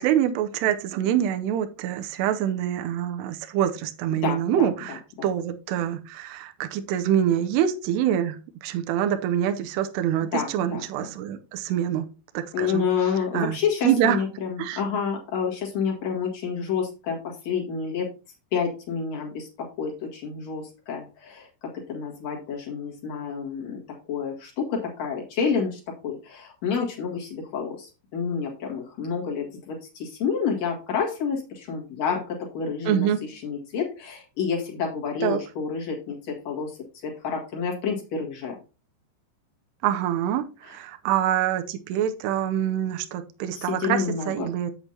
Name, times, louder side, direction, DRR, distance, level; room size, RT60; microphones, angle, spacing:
voice 1, 0.0-8.4 8.6-12.1 12.3-14.2 14.6-14.8 32.9-33.2 35.2-35.4 39.8-44.7, right 10 dB, 80° right, 6 dB, 2.5 m, -25 dB
voice 2, 4.2-5.3 10.3-11.1 12.5-18.1 18.5-23.8 24.1-36.8 37.0-38.6 43.5-44.5, left 6 dB, 55° left, -1 dB, 2.1 m, -29 dB
8.1 x 8.0 x 2.8 m, 0.32 s
omnidirectional pair, 5.4 m